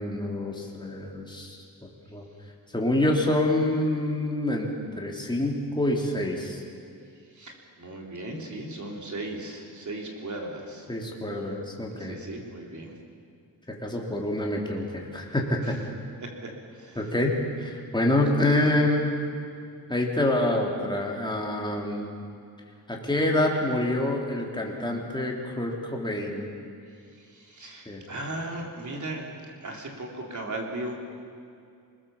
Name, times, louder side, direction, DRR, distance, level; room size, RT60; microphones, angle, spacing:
voice 1, 0.0-1.6 2.1-2.2 2.7-4.7 5.0-6.6 10.9-12.2 13.7-15.8 17.0-19.2 19.9-22.1 22.9-26.5 27.9-28.0, left 1 dB, 10° left, -1 dB, 3.5 m, -26 dB
voice 2, 7.3-10.9 12.0-12.9 15.6-15.7 16.2-17.1 27.1-29.3 29.6-30.9, right 2 dB, 45° right, 0 dB, 3.9 m, -37 dB
27.0 x 20.0 x 7.4 m, 2.4 s
wide cardioid pair, 135°, 40 cm